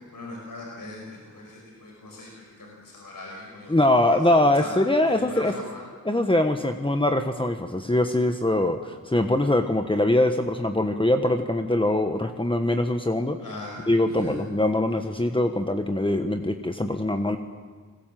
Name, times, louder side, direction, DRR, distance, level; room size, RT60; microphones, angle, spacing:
voice 1, 0.1-4.7 5.1-5.8 13.4-14.3, left 2 dB, 90° left, -2 dB, 5.5 m, -40 dB
voice 2, 3.7-5.5 6.0-13.4 13.9-17.4, left 1 dB, 15° left, 6 dB, 1.4 m, -23 dB
29.5 x 21.5 x 7.7 m, 1.5 s
cardioid pair, 55°, 33 cm